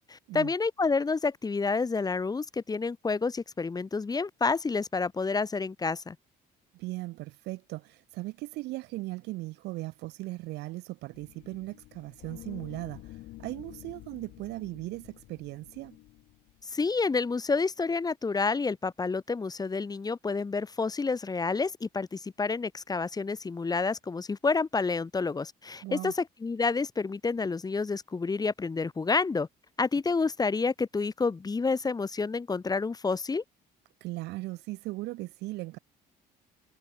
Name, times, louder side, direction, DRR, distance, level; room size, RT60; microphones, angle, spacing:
voice 1, 0.0-6.2 16.7-29.5 29.8-33.4, left 4 dB, 20° left, 1.9 m, -29 dB
voice 2, 6.7-13.0 13.4-16.0 25.8-26.1 34.0-35.8, right 20 dB, 90° right, 4.6 m, -38 dB
sound 1, 11.1-17.1, left 17 dB, 80° left, 6.7 m, -49 dB
cardioid pair, 110°, 17 cm